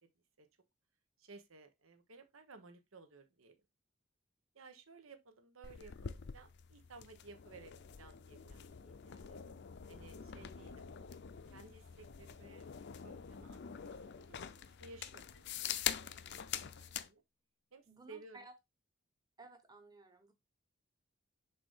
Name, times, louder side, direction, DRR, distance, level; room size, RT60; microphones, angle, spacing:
voice 1, 1.2-3.5 4.5-9.4 9.9-10.9 11.5-12.6 13.0-17.2 17.7-18.4, right 3 dB, 90° right, 1.1 m, -57 dB
sound 1, 5.6-17.1, left 9 dB, 55° left, 0.5 m, -45 dB
voice 2, 17.9-18.5 19.4-20.3, right 2 dB, 20° right, 1.0 m, -56 dB
6.8 x 2.8 x 5.5 m
head